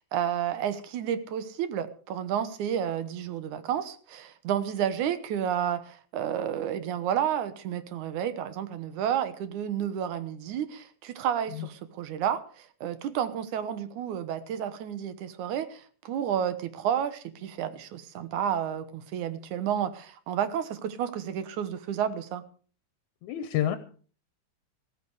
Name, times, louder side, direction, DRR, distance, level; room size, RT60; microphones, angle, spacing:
voice 1, 0.1-22.4, right 9 dB, 85° right, 12 dB, 2.6 m, -31 dB
voice 2, 23.2-23.8, left 11 dB, 80° left, 10 dB, 2.3 m, -28 dB
15.5 x 14.0 x 4.9 m, 0.42 s
omnidirectional pair, 3.4 m